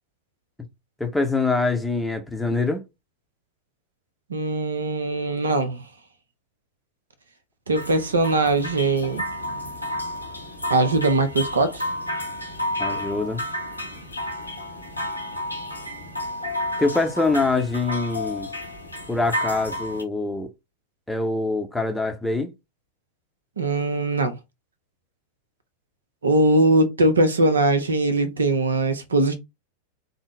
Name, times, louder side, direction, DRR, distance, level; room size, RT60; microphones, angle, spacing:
voice 1, 1.0-2.8 12.8-13.4 16.8-18.5 19.1-20.5 21.1-22.5, left 3 dB, 5° left, 0.6 m, -24 dB
voice 2, 4.3-5.8 7.7-9.2 10.7-11.9 23.6-24.4 26.2-29.3, right 2 dB, 70° right, 0.6 m, -21 dB
sound 1, 7.7-20.0, left 1 dB, 90° left, 0.8 m, -31 dB
3.6 x 2.0 x 3.7 m
figure-of-eight pair, 90°, 0 cm